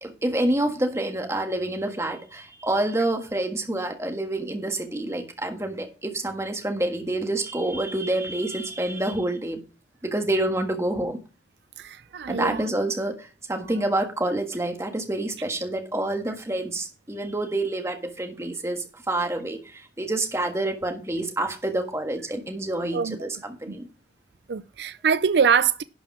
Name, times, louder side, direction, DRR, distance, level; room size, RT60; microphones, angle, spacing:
voice 1, 0.0-9.6 10.0-11.2 12.3-23.9, right 1 dB, 15° right, 1.5 m, -27 dB
voice 2, 11.8-12.7 13.6-13.7 22.9-23.3 23.7-23.8 24.5-25.8, right 6 dB, 70° right, 0.4 m, -24 dB
11.5 x 4.8 x 6.1 m
head